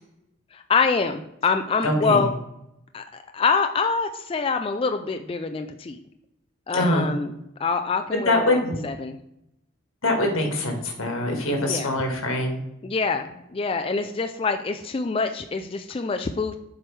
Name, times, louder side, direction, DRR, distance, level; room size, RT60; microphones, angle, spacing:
voice 1, 0.5-2.3 2.9-6.0 6.7-7.3 7.6-8.6 8.8-9.2 11.6-11.9 12.8-16.5, left 4 dB, 25° left, 6 dB, 0.3 m, -25 dB
voice 2, 1.8-2.3 6.7-7.1 8.2-8.8 10.0-12.6, left 1 dB, 90° left, 2 dB, 1.6 m, -23 dB
7.5 x 4.6 x 3.2 m, 0.83 s
head